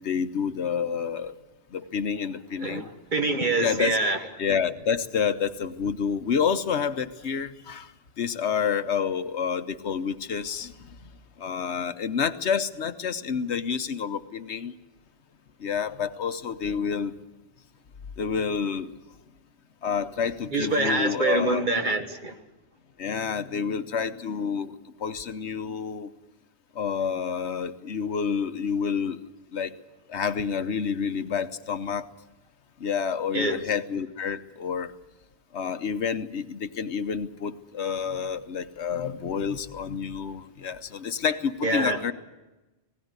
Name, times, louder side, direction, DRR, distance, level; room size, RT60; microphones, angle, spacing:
voice 1, 0.0-1.3 1.7-2.9 3.6-4.0 4.4-11.1 11.4-14.7 15.6-17.1 18.2-18.9 19.8-21.6 23.0-26.1 26.7-29.2 29.5-29.7 30.1-32.1 32.8-34.9 35.5-42.1, left 6 dB, 70° left, 11 dB, 1.2 m, -29 dB
voice 2, 3.1-4.2 20.5-22.3 33.3-33.6 41.6-42.0, right 2 dB, 40° right, 5 dB, 1.7 m, -25 dB
20.0 x 16.5 x 9.6 m, 1.1 s
omnidirectional pair, 1.2 m